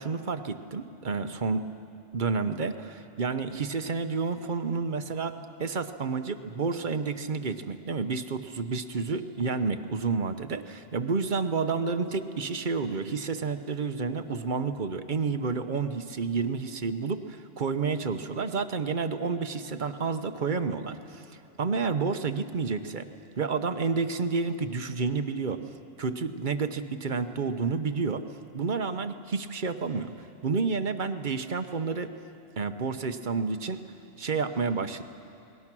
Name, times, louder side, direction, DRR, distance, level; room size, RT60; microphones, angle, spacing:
voice 1, 0.0-1.6 2.1-21.2 21.6-23.1 23.4-25.6 26.0-28.2 28.5-30.1 30.4-32.1 32.6-33.8 34.2-35.0, right 4 dB, 45° right, 9 dB, 1.0 m, -30 dB
29.5 x 20.5 x 6.1 m, 2.7 s
omnidirectional pair, 1.2 m